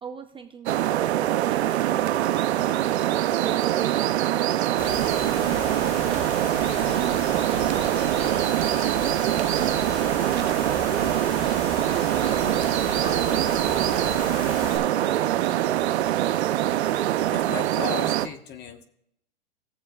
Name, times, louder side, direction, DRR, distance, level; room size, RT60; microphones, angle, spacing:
voice 1, 0.0-5.0 5.4-10.7 11.4-12.6 12.8-15.8, right 7 dB, 15° right, 5 dB, 0.6 m, -41 dB
sound 1, 0.7-18.3, right 13 dB, 85° right, 0.6 m, -24 dB
sound 2, 4.8-14.8, left 3 dB, 50° left, 2.8 m, -35 dB
voice 2, 17.3-18.8, left 6 dB, 35° left, 7 dB, 1.3 m, -35 dB
19.5 x 7.4 x 2.4 m, 0.75 s
hypercardioid pair, 125°, 32 cm